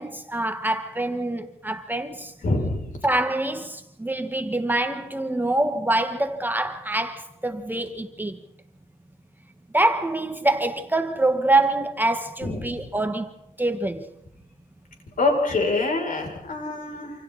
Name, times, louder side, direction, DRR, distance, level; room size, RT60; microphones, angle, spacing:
voice 1, 0.0-2.3 3.0-8.4 9.7-13.3 13.6-14.1, right 2 dB, 10° right, 1.8 m, -25 dB
voice 2, 2.4-2.9 12.4-12.8 15.2-17.1, left 2 dB, 60° left, 7.6 m, -25 dB
28.5 x 27.5 x 4.4 m
cardioid pair, 85°, 16 cm